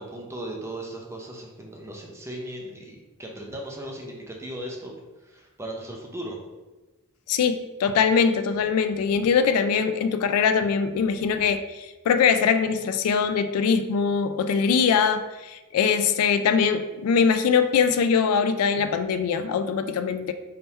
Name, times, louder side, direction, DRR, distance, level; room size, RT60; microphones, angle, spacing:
voice 1, 0.0-4.9 5.2-6.4, right 1 dB, 10° right, -1 dB, 0.6 m, -37 dB
voice 2, 7.3-20.3, left 6 dB, 80° left, 12 dB, 0.3 m, -22 dB
3.5 x 2.8 x 4.3 m, 1.1 s
head